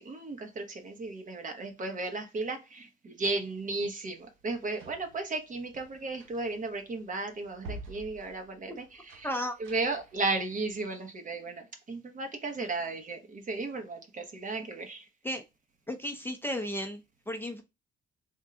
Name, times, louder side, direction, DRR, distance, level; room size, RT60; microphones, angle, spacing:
voice 1, 0.0-9.3 9.6-15.1, right 3 dB, 40° right, 1.0 m, -35 dB
sound 1, 4.2-10.2, right 2 dB, 85° right, 0.8 m, -49 dB
voice 2, 9.2-9.6 15.2-15.4 15.9-17.6, equal, 10° left, 0.6 m, -34 dB
3.6 x 2.2 x 3.7 m
cardioid pair, 90°, 20 cm